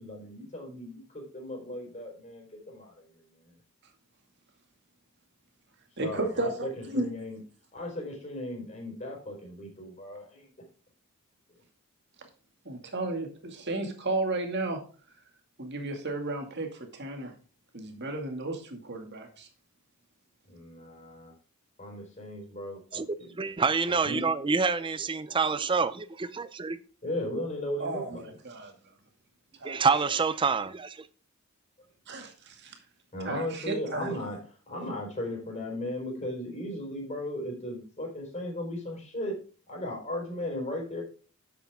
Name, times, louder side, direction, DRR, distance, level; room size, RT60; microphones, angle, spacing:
voice 1, 0.0-3.5 6.0-7.4 7.7-10.5 20.5-21.3 21.8-23.3 23.9-24.3 27.0-28.3 33.1-34.4 34.7-39.3 39.7-41.0, left 1 dB, 30° left, 0 dB, 4.4 m, -37 dB
voice 2, 6.0-7.1 12.7-14.8 15.6-17.3 17.7-19.5 27.8-28.2 28.4-28.7 29.6-30.2 32.1-32.7 33.2-34.1, right 2 dB, 50° right, 4 dB, 2.2 m, -33 dB
voice 3, 22.9-26.8 29.6-30.9, right 5 dB, 20° right, 15 dB, 0.5 m, -27 dB
10.0 x 8.2 x 3.6 m, 0.38 s
head